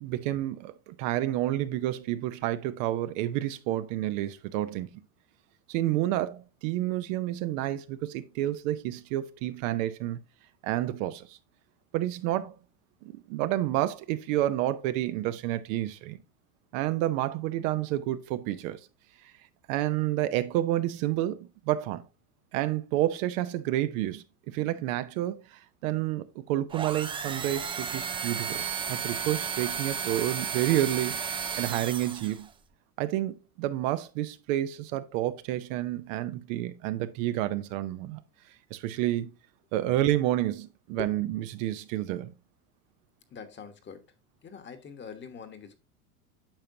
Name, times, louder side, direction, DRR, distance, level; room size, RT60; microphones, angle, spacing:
voice 1, 0.0-4.9 5.7-10.2 10.6-11.4 11.9-12.5 13.0-16.2 16.7-18.8 19.2-19.3 19.7-22.0 22.5-32.5 33.0-38.2 38.7-39.3 39.7-42.3, right 14 dB, 55° right, 0.8 m, -29 dB
sound 1, 26.7-32.5, right 7 dB, 10° right, 0.4 m, -33 dB
voice 2, 43.3-44.0 44.4-45.7, left 6 dB, 25° left, 1.3 m, -43 dB
8.9 x 5.7 x 2.7 m
hypercardioid pair, 100°, 45 cm